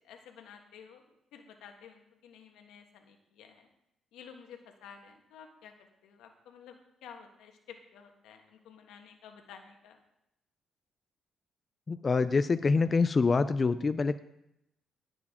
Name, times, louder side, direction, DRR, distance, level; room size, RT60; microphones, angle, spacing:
voice 1, 0.0-3.7 4.1-5.7 6.0-10.0, left 7 dB, 90° left, 4 dB, 1.4 m, -52 dB
voice 2, 11.9-14.2, left 4 dB, 30° left, 11 dB, 0.5 m, -26 dB
17.5 x 7.1 x 3.7 m, 0.84 s
cardioid pair, 90°, 0 cm